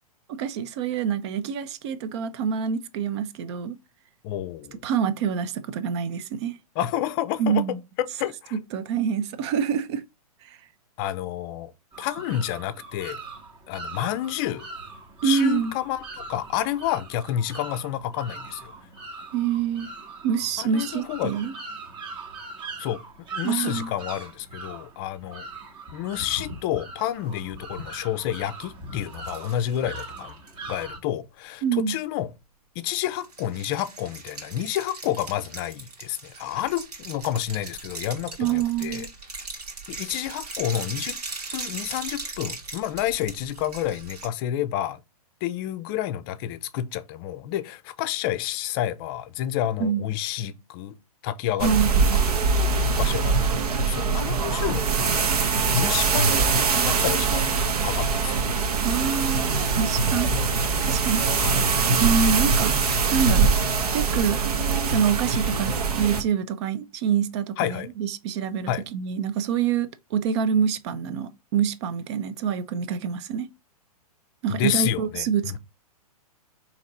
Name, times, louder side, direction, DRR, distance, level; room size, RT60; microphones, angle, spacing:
voice 1, 0.3-3.8 4.8-6.5 7.4-7.8 8.5-10.0 15.2-15.7 19.3-19.9 20.2-21.5 23.4-23.9 31.6-31.9 38.4-39.1 49.8-50.1 51.6-52.2 58.8-60.3 60.8-61.2 62.0-62.7 63.1-63.6 63.9-64.4 64.9-73.5 74.4-75.6, right 7 dB, 45° right, 0.6 m, -26 dB
voice 2, 4.2-4.8 6.8-7.6 8.0-8.6 11.0-11.7 12.0-13.2 13.7-14.7 15.2-18.7 20.6-21.3 22.8-23.0 23.3-25.5 25.9-30.4 30.7-32.3 32.8-39.1 39.9-41.2 41.5-45.0 45.4-50.9 51.2-52.2 52.9-55.3 55.7-56.4 56.8-57.6 57.8-58.3 61.4-61.6 67.6-67.9 68.7-68.8 74.5-75.6, left 12 dB, 35° left, 0.5 m, -29 dB
sound 1, 11.9-31.0, right 3 dB, 25° right, 0.9 m, -40 dB
sound 2, 29.1-30.5 33.2-44.3, right 3 dB, 90° right, 1.7 m, -39 dB
sound 3, 51.6-66.2, right 4 dB, 75° right, 1.0 m, -23 dB
4.1 x 3.0 x 3.9 m
hypercardioid pair, 130°, 20 cm